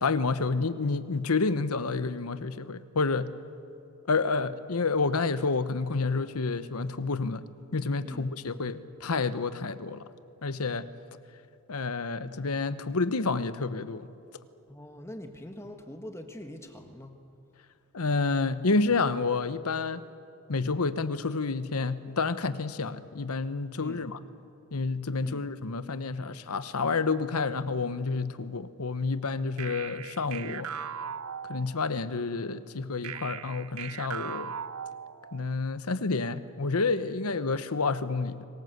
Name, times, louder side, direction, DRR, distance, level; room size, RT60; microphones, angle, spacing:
voice 1, 0.0-3.3 4.1-7.4 7.7-10.0 10.4-10.9 11.7-14.1 17.9-20.0 20.5-24.2 24.7-30.7 31.5-34.5 35.3-38.4, left 4 dB, 80° left, 13 dB, 1.0 m, -29 dB
voice 2, 14.7-17.1 23.8-24.0 25.2-25.5, left 1 dB, 10° left, 5 dB, 1.5 m, -43 dB
sound 1, 29.6-32.1 33.0-35.6, right 8 dB, 75° right, 0.6 m, -39 dB
27.5 x 19.0 x 8.0 m, 3.0 s
head